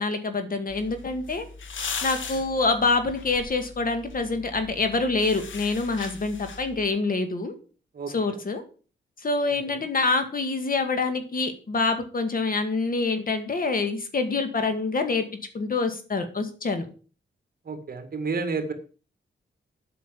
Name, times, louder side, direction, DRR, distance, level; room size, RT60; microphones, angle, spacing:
voice 1, 0.0-1.5 2.0-7.5 8.1-8.6 9.2-15.3 15.5-16.9, left 3 dB, 50° left, 7 dB, 2.0 m, -26 dB
sound 1, 0.7-6.9, left 5 dB, 85° left, 1.6 m, -39 dB
voice 2, 8.0-8.4 17.7-18.7, right 4 dB, 50° right, 7 dB, 2.1 m, -31 dB
8.4 x 6.1 x 7.5 m, 0.38 s
cardioid pair, 90°, 19 cm